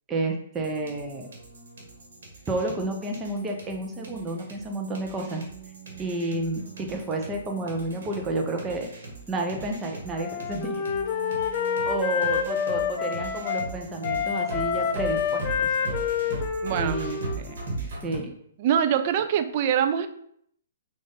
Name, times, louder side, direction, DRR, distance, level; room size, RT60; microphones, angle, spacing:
voice 1, 0.1-1.3 2.5-5.4 6.0-8.9 9.3-10.9 11.8-15.8 16.7-17.2 18.0-18.3, right 2 dB, 15° right, 1 dB, 0.7 m, -30 dB
sound 1, 0.5-18.2, right 3 dB, 70° right, 1.3 m, -39 dB
Wind instrument woodwind instrument, 10.1-13.7 14.0-17.8, left 7 dB, 35° left, 0.4 m, -28 dB
voice 2, 16.6-17.0 17.4-17.6 18.6-20.1, right 9 dB, 45° right, 9 dB, 0.3 m, -24 dB
3.3 x 2.5 x 3.9 m, 0.68 s
hypercardioid pair, 135°, 0 cm